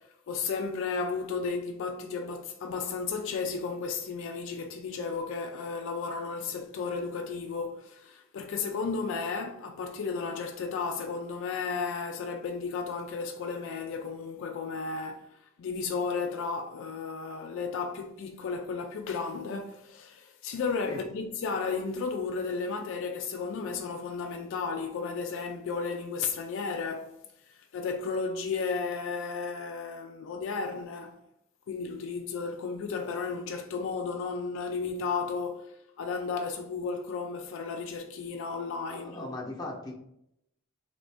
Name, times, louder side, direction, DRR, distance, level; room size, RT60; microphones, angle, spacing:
voice 1, 0.0-27.2 27.5-31.2 31.7-39.3, left 5 dB, 65° left, 0.3 m, -34 dB
voice 2, 38.9-39.9, left 2 dB, 20° left, 0.7 m, -38 dB
3.5 x 2.5 x 3.3 m
head